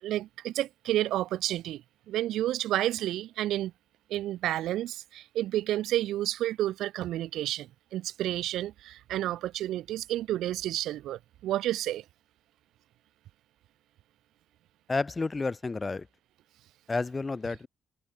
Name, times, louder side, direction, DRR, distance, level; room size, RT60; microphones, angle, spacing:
voice 1, 0.0-3.7 4.1-12.0, right 13 dB, 85° right, 5.4 m, -30 dB
voice 2, 14.9-16.1 16.9-17.7, left 3 dB, 25° left, 5.0 m, -30 dB
cardioid pair, 90°, 0 cm